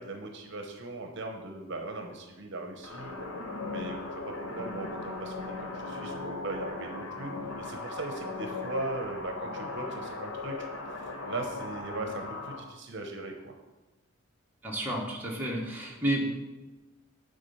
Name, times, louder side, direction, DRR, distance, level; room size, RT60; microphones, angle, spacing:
voice 1, 0.0-3.1 3.7-10.7 11.2-13.5, right 2 dB, 55° right, 4 dB, 0.8 m, -39 dB
sound 1, 2.8-12.6, left 3 dB, 75° left, 1.0 m, -38 dB
voice 2, 14.6-16.3, right 1 dB, 10° right, -3 dB, 1.1 m, -31 dB
8.8 x 3.7 x 5.5 m, 1.1 s
head